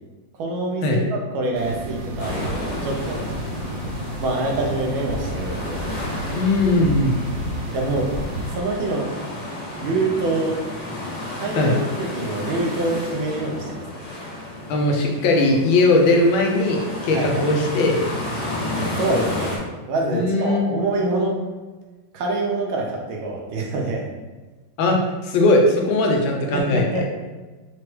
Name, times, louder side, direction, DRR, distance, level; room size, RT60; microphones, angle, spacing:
voice 1, 0.4-3.2 4.2-5.9 7.7-8.1 8.5-9.1 9.8-10.6 11.3-13.8 17.1-17.4 18.7-19.6 19.9-21.4 22.1-24.0 26.5-27.1, right 2 dB, 90° right, 0 dB, 1.6 m, -25 dB
sound 1, 1.5-8.6, right 1 dB, 70° right, 1.3 m, -31 dB
sound 2, 2.2-19.6, left 2 dB, 50° left, 1.9 m, -32 dB
voice 2, 6.3-7.1 11.6-11.8 14.7-18.0 20.1-20.7 24.8-27.0, left 2 dB, 75° left, 1 dB, 1.5 m, -19 dB
4.8 x 3.0 x 3.2 m, 1.2 s
omnidirectional pair, 2.2 m